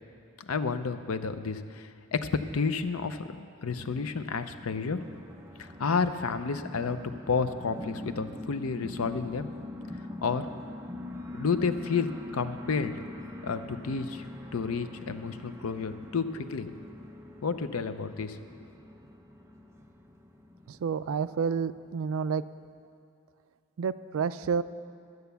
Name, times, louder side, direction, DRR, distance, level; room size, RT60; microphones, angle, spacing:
voice 1, 0.4-2.3 2.5-5.0 5.6-7.0 7.3-9.5 10.2-10.4 11.3-12.1 12.3-12.9 13.4-14.2 14.5-16.7 17.4-18.4, left 5 dB, 90° left, 11 dB, 0.6 m, -31 dB
sound 1, 3.6-22.2, left 1 dB, 15° right, 0.6 m, -44 dB
voice 2, 20.7-22.4 23.8-24.6, right 6 dB, 75° right, 14 dB, 0.4 m, -29 dB
12.5 x 8.0 x 6.9 m, 2.4 s
head